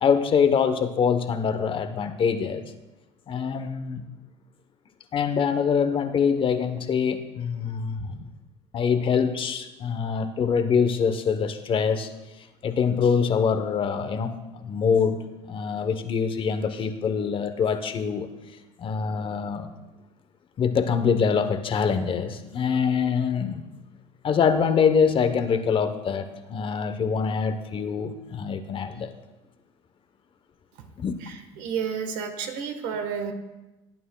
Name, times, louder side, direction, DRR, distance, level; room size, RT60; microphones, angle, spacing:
voice 1, 0.0-2.6 3.3-4.0 5.1-8.3 8.7-12.1 12.4-15.2 15.5-18.3 18.8-19.7 20.6-23.6 24.2-29.1 31.0-31.2, left 6 dB, 40° left, 9 dB, 0.9 m, -24 dB
voice 2, 31.2-33.3, right 6 dB, 70° right, 7 dB, 1.3 m, -31 dB
17.5 x 9.2 x 2.3 m, 1.0 s
supercardioid pair, 95°, 14 cm